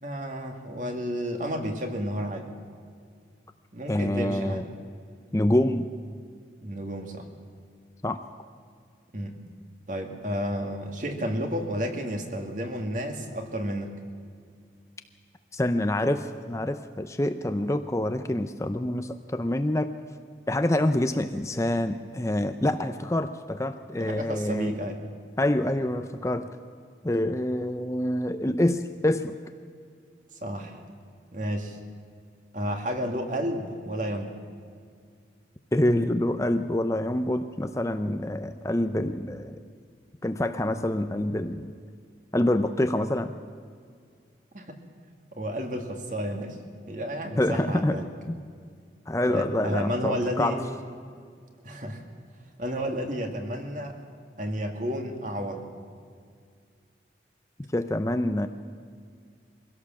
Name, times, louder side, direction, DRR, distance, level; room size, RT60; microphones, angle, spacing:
voice 1, 0.0-2.5 3.7-4.7 6.6-7.3 9.1-9.3 9.9-13.9 24.0-25.0 30.4-30.8 31.3-31.8 32.5-34.3 44.5-44.7 45.4-46.6 46.9-48.1 49.3-50.6 51.6-52.0 52.6-54.0 54.4-55.7, equal, 45° right, 4 dB, 2.1 m, -31 dB
voice 2, 3.9-4.6 5.3-5.9 8.0-8.2 15.5-19.9 20.5-24.8 25.4-26.5 27.0-29.4 35.7-39.6 40.2-41.7 42.3-43.4 47.4-48.0 48.3-48.4 49.1-50.6 57.7-58.5, left 1 dB, 15° left, 8 dB, 0.5 m, -26 dB
23.0 x 16.5 x 7.3 m, 2.2 s
head